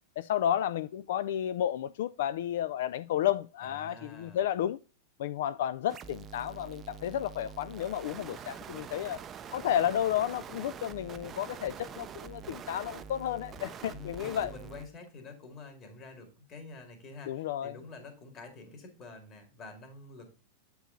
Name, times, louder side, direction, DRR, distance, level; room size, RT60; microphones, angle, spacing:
voice 1, 0.2-4.8 5.2-9.2 9.5-14.5 17.3-17.8, left 11 dB, 70° left, 0.3 m, -32 dB
voice 2, 3.6-4.4 13.9-20.3, left 3 dB, 30° left, 2.1 m, -48 dB
sound 1, 5.9-14.9, right 7 dB, 20° right, 0.5 m, -45 dB
8.0 x 4.7 x 3.7 m
supercardioid pair, 155°, 0 cm